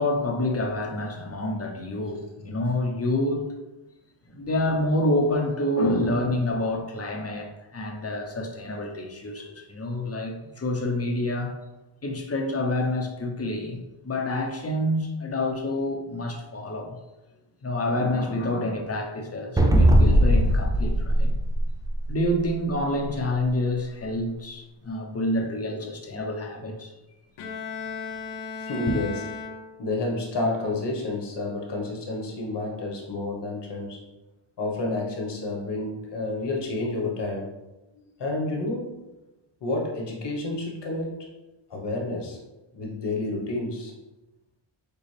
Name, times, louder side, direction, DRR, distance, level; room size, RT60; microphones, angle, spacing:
voice 1, 0.0-3.5 4.3-11.5 12.0-17.0 17.6-21.3 22.1-26.9 28.9-29.0, left 1 dB, 30° left, 2 dB, 0.9 m, -27 dB
sound 1, 19.6-22.3, equal, 10° right, 0.5 m, -19 dB
Bowed string instrument, 27.4-30.1, left 5 dB, 80° left, 0.7 m, -36 dB
voice 2, 28.6-29.2 29.8-34.0 34.6-37.5 38.2-38.9 39.6-41.2 41.7-42.4 42.7-43.9, left 2 dB, 55° left, -1 dB, 1.4 m, -30 dB
6.7 x 2.4 x 3.3 m, 1.0 s
cardioid pair, 95°, 50 cm